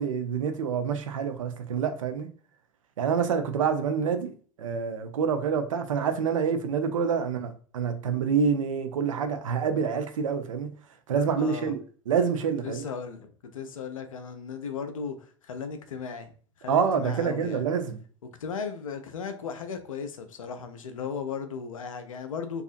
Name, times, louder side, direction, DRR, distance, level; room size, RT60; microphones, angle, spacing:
voice 1, 0.0-2.3 3.0-4.3 4.6-10.7 11.1-11.8 12.1-12.8 16.7-18.0, right 6 dB, 75° right, 0.4 m, -27 dB
voice 2, 11.4-11.7 12.6-16.3 16.6-17.7 18.2-22.6, left 6 dB, 80° left, 0.4 m, -36 dB
2.6 x 2.3 x 2.4 m
figure-of-eight pair, 85°, 17 cm